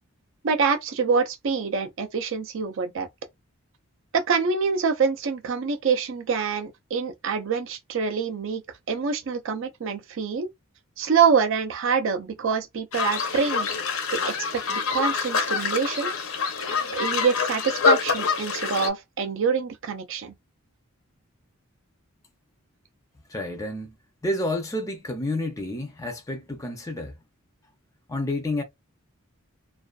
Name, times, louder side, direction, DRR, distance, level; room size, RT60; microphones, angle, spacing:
voice 1, 0.4-3.1 4.1-8.6 8.9-10.5 11.0-13.7 14.1-16.1 16.7-20.3, right 5 dB, 60° right, 0.4 m, -25 dB
sound 1, 12.9-18.9, left 5 dB, 70° left, 0.6 m, -26 dB
voice 2, 23.3-23.9 24.2-27.2 28.1-28.6, left 1 dB, 15° left, 0.4 m, -29 dB
2.4 x 2.2 x 2.2 m
head